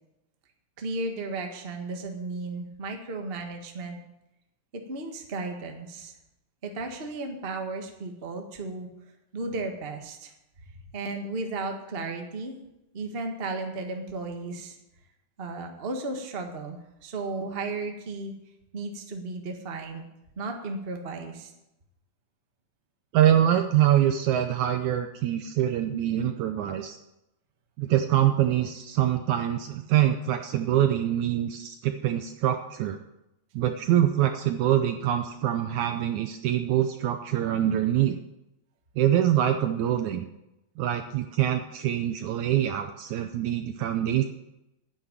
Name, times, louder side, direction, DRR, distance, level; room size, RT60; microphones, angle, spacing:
voice 1, 0.8-4.0 4.7-6.1 6.6-8.9 9.3-10.3 10.9-12.6 12.9-14.8 15.4-18.3 18.7-20.0 20.4-21.5, right 3 dB, 35° right, 3 dB, 0.9 m, -34 dB
voice 2, 23.1-27.0 27.8-33.0 33.5-38.2 39.0-40.3 40.8-44.2, right 11 dB, 75° right, 7 dB, 1.8 m, -24 dB
9.9 x 9.2 x 9.1 m, 0.90 s
omnidirectional pair, 3.9 m